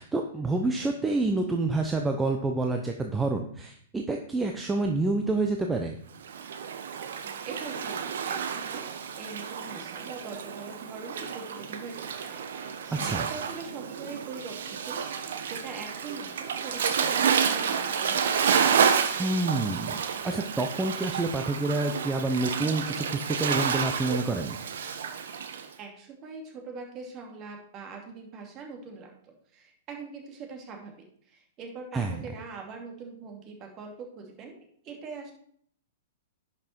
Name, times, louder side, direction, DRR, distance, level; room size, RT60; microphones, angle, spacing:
voice 1, 0.0-6.0 12.9-13.3 19.2-19.9 20.2-24.6 31.9-32.2, right 2 dB, 10° right, 3 dB, 0.8 m, -28 dB
Waves surf, 6.2-25.7, right 7 dB, 65° right, 1.0 m, -30 dB
voice 2, 7.2-18.6 25.8-34.6 34.8-35.3, right 4 dB, 30° right, 2 dB, 2.7 m, -43 dB
10.5 x 5.8 x 4.6 m, 0.63 s
figure-of-eight pair, 110°, 0 cm